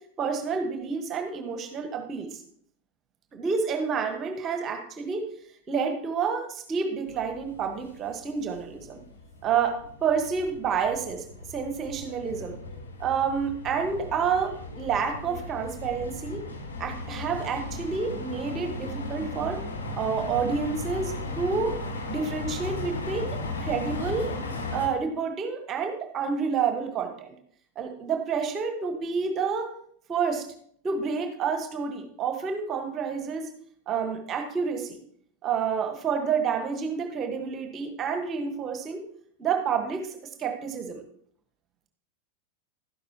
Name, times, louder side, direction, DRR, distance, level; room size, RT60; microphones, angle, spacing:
voice 1, 0.2-2.4 3.3-5.2 5.7-9.0 9.4-12.6 13.0-16.4 16.8-19.6 19.9-21.7 22.1-24.4 24.7-27.3 27.7-29.7 30.1-30.5 30.8-33.5 33.9-35.0 35.4-39.0 39.4-41.0, right 6 dB, 30° right, 6 dB, 1.4 m, -29 dB
sound 1, 7.1-24.9, left 2 dB, 70° left, 1.6 m, -36 dB
12.5 x 11.0 x 2.9 m, 0.64 s
figure-of-eight pair, 90°, 0 cm